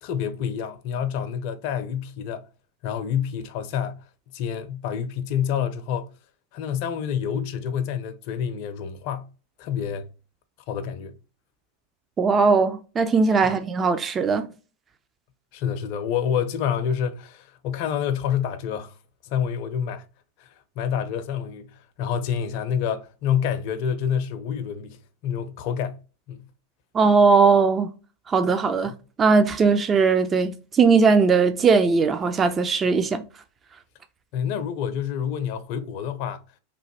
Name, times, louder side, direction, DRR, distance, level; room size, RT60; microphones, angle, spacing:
voice 1, 0.0-2.4 2.8-4.0 4.3-6.1 6.5-9.3 9.6-10.1 10.7-11.2 13.5-13.6 15.5-18.9 19.2-20.0 20.4-20.5 20.8-21.7 22.0-25.0 25.2-26.0 26.3-26.4 28.8-28.9 34.3-36.4, left 8 dB, 55° left, 0.5 m, -28 dB
voice 2, 12.2-14.5 26.9-27.9 28.3-28.9 29.2-33.2, right 4 dB, 25° right, 0.3 m, -19 dB
2.9 x 2.1 x 2.9 m
hypercardioid pair, 100°, 0 cm